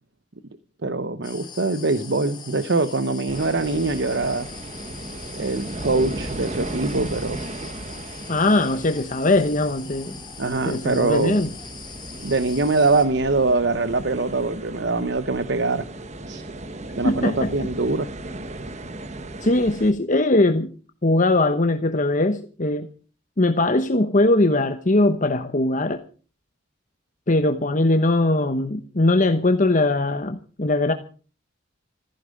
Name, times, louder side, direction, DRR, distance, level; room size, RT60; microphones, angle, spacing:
voice 1, 0.8-4.5 5.4-7.4 10.4-11.4 12.2-15.9 16.3-16.4 17.0-18.1, right 3 dB, 65° right, 0.9 m, -23 dB
sound 1, 1.2-13.1, left 6 dB, 25° left, 3.2 m, -42 dB
sound 2, 3.3-19.9, right 1 dB, 35° right, 1.2 m, -36 dB
voice 2, 8.3-10.2 10.6-11.5 17.0-17.5 19.4-20.7 21.0-22.9 23.4-26.0 27.3-30.9, left 2 dB, 40° left, 1.1 m, -20 dB
15.5 x 15.0 x 5.2 m
head